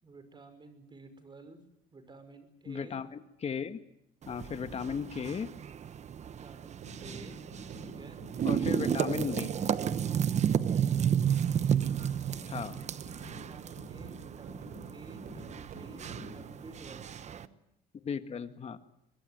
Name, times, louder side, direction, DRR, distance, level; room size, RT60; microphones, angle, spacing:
voice 1, 0.0-3.0 6.2-7.4 7.7-8.2 10.3-11.3 12.2-12.9 13.3-17.5, right 3 dB, 25° right, 10 dB, 5.6 m, -53 dB
voice 2, 2.7-3.8 4.3-5.5 8.4-9.6 12.5-12.9 18.0-18.8, left 6 dB, 40° left, 10 dB, 1.8 m, -36 dB
sound 1, 4.2-17.5, right 8 dB, 40° right, 1.0 m, -32 dB
sound 2, 6.8-16.5, right 3 dB, 60° right, 7.2 m, -47 dB
24.0 x 21.5 x 9.5 m, 0.78 s
cardioid pair, 110°, 17 cm